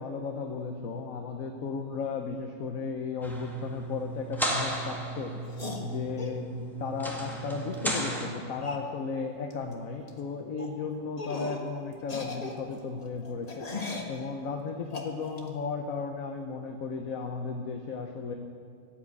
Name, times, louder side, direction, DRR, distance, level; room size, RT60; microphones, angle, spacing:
voice 1, 0.0-18.3, left 5 dB, 85° left, 4 dB, 1.3 m, -35 dB
sound 1, 3.2-8.3, right 1 dB, ahead, 2.0 m, -34 dB
sound 2, 5.5-6.4 7.7-7.8 8.1-8.2 8.6-8.9 9.5-9.7 10.0-10.2 10.6-10.7 11.2-11.7 12.0-14.2 14.9-15.5, left 3 dB, 30° left, 1.4 m, -38 dB
14.0 x 8.9 x 8.5 m, 2.3 s
omnidirectional pair, 1.4 m